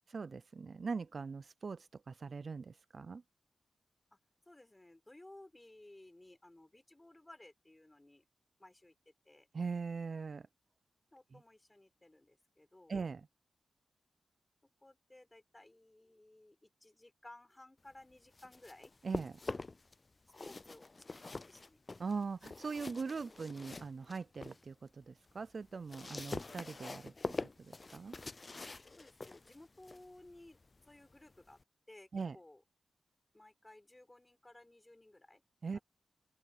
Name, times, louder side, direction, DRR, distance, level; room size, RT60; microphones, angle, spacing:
voice 1, 0.1-3.2 9.5-10.5 11.3-11.4 12.9-13.3 19.0-19.4 22.0-28.1 32.1-32.4 35.6-35.8, right 5 dB, 55° right, 0.4 m, -41 dB
voice 2, 4.5-8.2 8.6-9.5 11.1-13.0 14.8-18.9 20.3-21.8 29.0-30.6 30.9-31.6 31.9-32.6 33.3-35.4, left 1 dB, 20° left, 5.3 m, -58 dB
sound 1, 18.1-19.9 20.3-24.6 25.0-31.6, left 3 dB, 35° left, 0.5 m, -45 dB
open air
wide cardioid pair, 95°, 0 cm